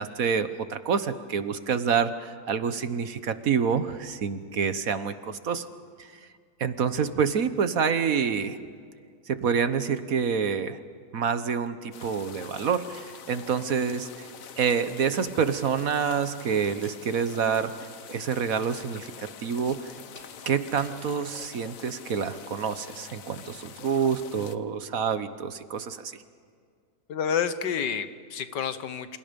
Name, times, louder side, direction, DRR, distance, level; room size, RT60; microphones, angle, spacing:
voice 1, 0.0-5.7 6.0-6.1 6.6-8.6 9.3-10.8 11.1-14.3 14.6-19.1 19.4-19.9 20.5-26.2, right 6 dB, 55° right, 11 dB, 1.4 m, -27 dB
sound 1, 11.9-24.6, left 8 dB, 55° left, 1.3 m, -46 dB
sound 2, 16.8-17.7 18.0-19.2 19.6-20.5 20.8-21.6, left 2 dB, 35° left, 3.0 m, -53 dB
voice 2, 27.1-29.2, left 7 dB, 80° left, 11 dB, 1.8 m, -29 dB
28.5 x 27.5 x 5.3 m, 2.1 s
omnidirectional pair, 1.8 m